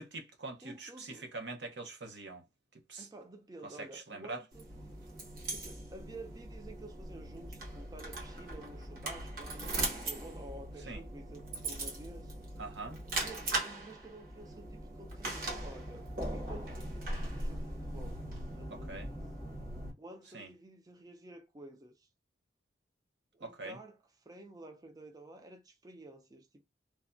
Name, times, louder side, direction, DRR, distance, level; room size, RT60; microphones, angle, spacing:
voice 1, 0.0-2.4 2.9-3.1 3.6-4.4 10.9-11.0 12.6-13.0 18.7-19.1 20.3-20.5 23.4-23.8, right 3 dB, 75° right, 0.7 m, -44 dB
voice 2, 0.6-1.3 3.0-4.7 5.5-12.3 13.2-19.2 20.0-22.1 23.3-24.0 24.3-26.6, right 2 dB, 20° right, 0.4 m, -51 dB
sound 1, 4.5-19.9, right 2 dB, 50° right, 1.1 m, -40 dB
3.2 x 2.1 x 2.5 m
head